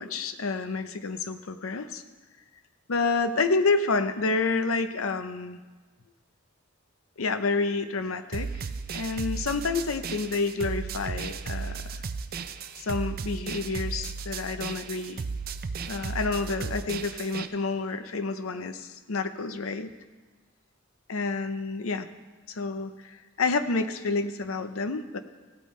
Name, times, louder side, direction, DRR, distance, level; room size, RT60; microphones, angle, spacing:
voice 1, 0.0-2.0 2.9-5.6 7.2-8.7 8.9-12.0 12.8-15.2 15.9-19.9 21.1-22.1 22.5-25.2, left 3 dB, 90° left, 10 dB, 0.7 m, -29 dB
sound 1, 8.3-17.5, right 5 dB, 45° right, 0.5 m, -35 dB
16.0 x 8.7 x 3.2 m, 1.3 s
head